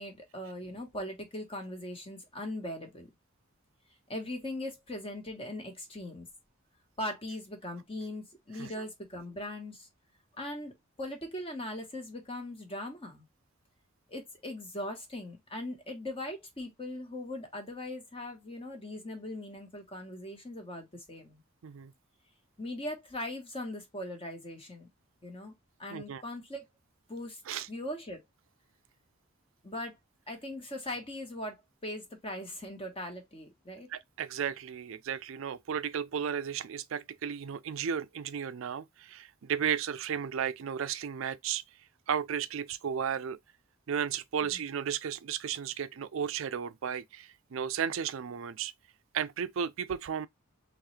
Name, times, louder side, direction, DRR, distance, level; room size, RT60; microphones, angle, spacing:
voice 1, 0.0-3.1 4.1-6.3 7.0-9.9 10.4-13.2 14.1-21.4 22.6-24.9 25.2-25.5 25.8-26.7 27.1-27.4 27.7-28.2 29.6-30.0 30.3-31.6 31.8-33.9 44.4-44.6, left 1 dB, 25° left, 1.3 m, -40 dB
voice 2, 25.9-26.2 27.5-27.7 33.9-41.6 42.1-43.4 43.9-48.7 49.1-50.3, right 8 dB, 65° right, 0.4 m, -34 dB
3.8 x 3.1 x 3.2 m
head